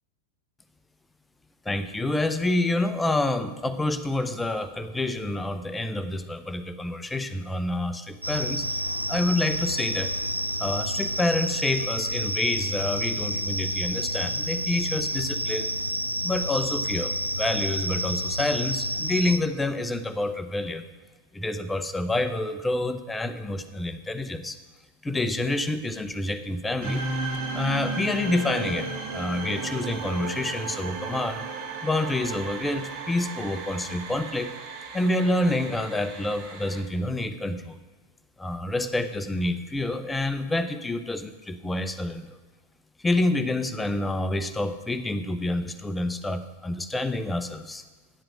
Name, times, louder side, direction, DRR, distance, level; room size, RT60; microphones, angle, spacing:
voice 1, 1.7-8.7 9.1-10.1 10.6-15.7 16.2-20.9 21.3-24.6 25.0-27.1 27.5-31.5 31.8-34.5 34.9-37.8 38.4-42.4 43.0-47.8, left 2 dB, 10° left, 10 dB, 0.7 m, -28 dB
sound 1, 8.2-19.4, equal, 90° right, 0.4 m, -29 dB
sound 2, 26.8-36.8, right 3 dB, 45° right, 1.6 m, -34 dB
9.7 x 7.7 x 6.3 m, 1.4 s
figure-of-eight pair, 90°, 0 cm